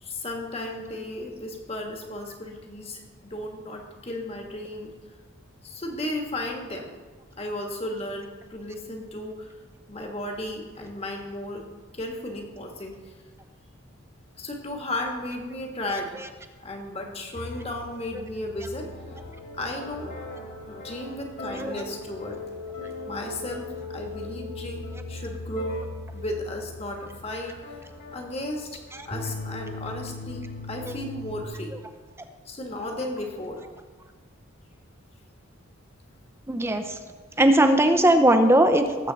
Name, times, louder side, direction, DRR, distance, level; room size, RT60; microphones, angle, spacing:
voice 1, 0.0-4.9 5.6-6.9 7.4-9.5 9.9-11.6 11.9-13.1 14.4-16.1 16.6-18.9 19.6-20.1 20.7-22.4 23.1-25.8 26.1-31.7 32.4-33.6, left 1 dB, 30° left, 2 dB, 1.5 m, -34 dB
sound 1, 17.3-31.4, left 2 dB, 45° left, 2.1 m, -39 dB
voice 2, 36.5-37.0 37.4-39.1, right 1 dB, 10° right, 7 dB, 0.6 m, -19 dB
18.5 x 7.9 x 4.0 m, 1.4 s
head